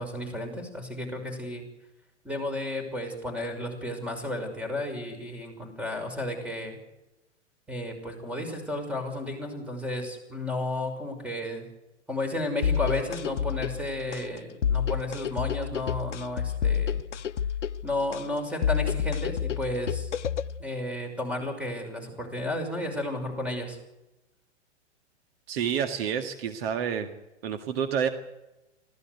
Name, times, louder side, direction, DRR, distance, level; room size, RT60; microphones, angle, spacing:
voice 1, 0.0-1.6 2.2-6.8 7.7-11.7 12.1-17.0 17.8-20.1 20.6-23.8, left 1 dB, 5° right, 6 dB, 5.9 m, -33 dB
sound 1, 12.6-20.6, left 8 dB, 80° left, 0.8 m, -29 dB
voice 2, 25.5-27.1 27.4-28.1, right 8 dB, 55° right, 6 dB, 2.0 m, -28 dB
25.5 x 16.0 x 8.1 m, 0.97 s
hypercardioid pair, 115°, 35 cm